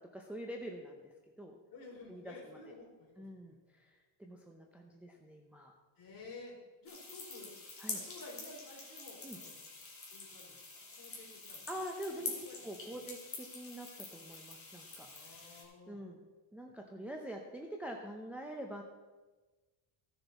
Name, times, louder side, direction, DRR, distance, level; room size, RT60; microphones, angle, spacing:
voice 1, 0.1-1.6 2.1-2.6 3.2-5.7 7.8-8.0 9.2-9.4 11.7-12.3 12.6-15.5 15.9-16.2 16.5-18.8, equal, 5° right, 1 dB, 0.5 m, -45 dB
voice 2, 1.7-3.6 6.0-7.5 7.9-9.6 10.1-11.6 12.2-13.0 15.0-16.0, left 3 dB, 45° left, -4 dB, 3.9 m, -53 dB
sound 1, 6.9-15.6, left 3 dB, 25° left, 2.4 m, -46 dB
15.0 x 7.0 x 4.1 m, 1.2 s
cardioid pair, 160°, 49 cm